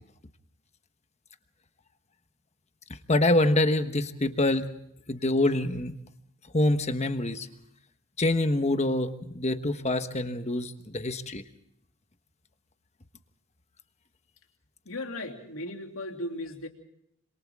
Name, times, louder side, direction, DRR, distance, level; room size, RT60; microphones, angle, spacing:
voice 1, 3.1-4.7 5.1-6.0 6.5-7.5 8.2-11.4, left 2 dB, 30° left, 9 dB, 1.2 m, -25 dB
voice 2, 14.8-16.7, left 1 dB, 80° left, 3 dB, 3.0 m, -36 dB
27.0 x 26.5 x 3.6 m, 0.73 s
head